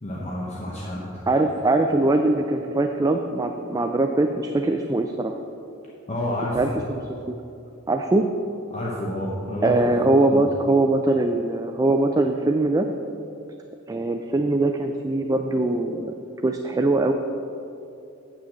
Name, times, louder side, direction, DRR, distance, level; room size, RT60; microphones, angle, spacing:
voice 1, 0.0-1.2 6.1-6.7 8.7-9.8 10.3-10.4, left 1 dB, 35° left, -5 dB, 1.0 m, -29 dB
voice 2, 1.3-5.4 6.5-7.0 7.9-8.3 9.6-12.9 13.9-16.1 16.4-17.1, right 2 dB, 20° right, 5 dB, 0.3 m, -22 dB
8.4 x 6.1 x 6.4 m, 2.7 s
head